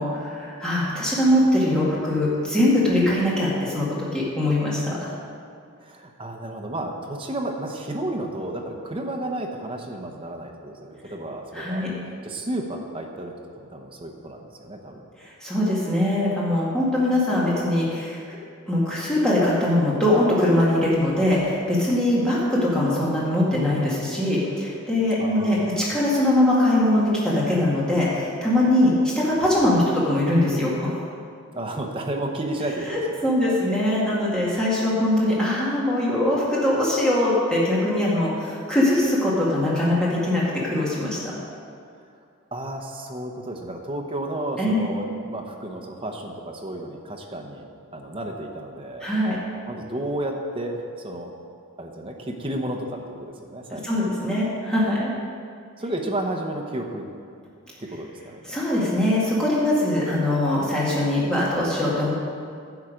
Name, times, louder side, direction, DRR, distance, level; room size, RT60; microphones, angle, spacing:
voice 1, 0.0-3.9 4.1-5.1 11.5-11.9 15.4-18.2 18.7-31.0 33.2-41.2 44.6-44.9 49.0-49.4 53.7-55.1 58.5-62.1, left 1 dB, 5° left, -7 dB, 1.9 m, -22 dB
voice 2, 5.8-11.8 12.2-13.3 13.7-15.0 25.2-26.0 31.5-33.6 42.5-47.6 47.9-49.1 49.7-51.3 51.8-54.1 55.8-57.0 57.8-58.5, right 1 dB, 25° right, 1 dB, 0.9 m, -32 dB
10.5 x 7.3 x 5.1 m, 2.3 s
head